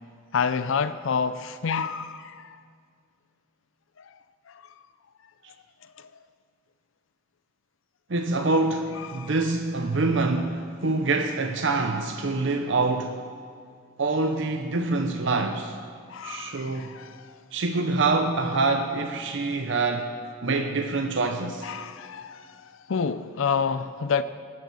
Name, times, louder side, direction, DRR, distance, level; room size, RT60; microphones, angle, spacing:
voice 1, 0.3-2.6 4.0-4.1 6.0-6.1 9.1-9.3 16.1-17.3 21.6-24.2, left 6 dB, 70° left, 0.5 m, -29 dB
voice 2, 8.1-13.2 14.0-15.8 16.2-17.0 17.5-20.1 20.4-21.7, right 3 dB, 60° right, 0.7 m, -25 dB
18.5 x 7.8 x 7.0 m
head